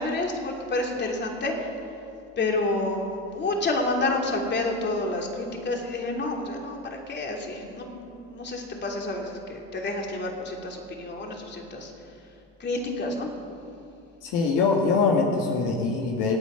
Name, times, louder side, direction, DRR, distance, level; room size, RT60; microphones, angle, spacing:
voice 1, 0.0-1.5 2.4-3.1 3.3-11.9 12.6-13.3, left 2 dB, 35° left, 1 dB, 3.1 m, -29 dB
voice 2, 14.2-16.4, left 4 dB, 75° left, 0 dB, 2.0 m, -23 dB
26.5 x 9.0 x 5.8 m, 2.6 s
supercardioid pair, 95°, 32 cm